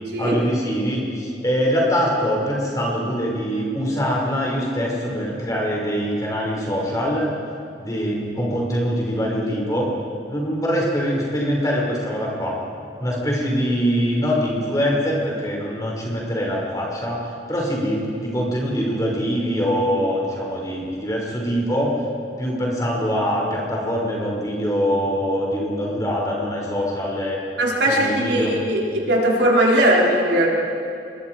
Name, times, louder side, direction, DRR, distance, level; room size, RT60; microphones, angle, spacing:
voice 1, 0.2-7.3 7.8-9.9 10.3-12.6 13.0-17.2 17.5-21.9 22.4-27.4 27.9-28.5, equal, 20° left, -3 dB, 5.4 m, -23 dB
voice 2, 27.6-28.8 29.1-30.5, right 1 dB, 80° right, -3 dB, 4.3 m, -18 dB
28.0 x 22.0 x 4.8 m, 2.5 s
head